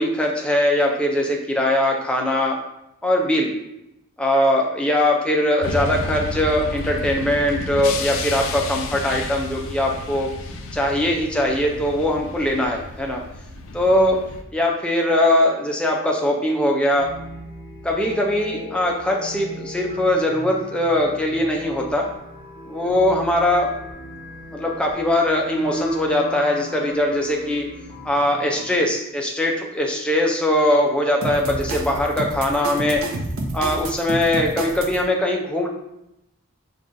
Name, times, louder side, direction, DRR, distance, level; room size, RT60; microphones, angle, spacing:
voice 1, 0.0-2.6 3.0-3.5 4.2-10.3 10.7-13.2 13.7-14.2 14.5-17.1 17.8-22.1 22.7-23.7 24.5-27.7 28.0-33.0 33.5-35.7, left 1 dB, 5° left, -1 dB, 0.4 m, -21 dB
sound 1, 5.6-14.4, left 2 dB, 70° left, 0.4 m, -32 dB
sound 2, 17.0-28.8, equal, 20° left, 0.8 m, -38 dB
sound 3, 31.2-35.0, right 2 dB, 75° right, 0.4 m, -29 dB
5.1 x 2.3 x 2.5 m, 0.86 s
head